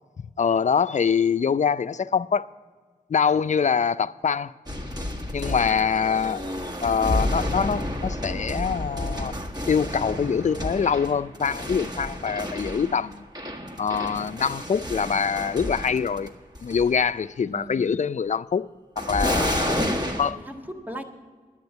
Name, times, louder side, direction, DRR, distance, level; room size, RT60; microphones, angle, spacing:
voice 1, 0.4-2.5 3.1-4.5 5.3-6.4 6.8-9.4 9.7-13.2 13.8-16.3 16.6-18.7 19.0-19.9 20.2-20.4, left 6 dB, 50° left, 0.4 m, -24 dB
sound 1, 4.7-16.3 16.5-17.0 19.0-20.3, left 1 dB, 25° right, 1.6 m, -30 dB
voice 2, 17.5-18.0 19.7-20.0 20.3-21.0, equal, 10° right, 1.6 m, -36 dB
10.5 x 8.7 x 8.0 m
wide cardioid pair, 65°, 15 cm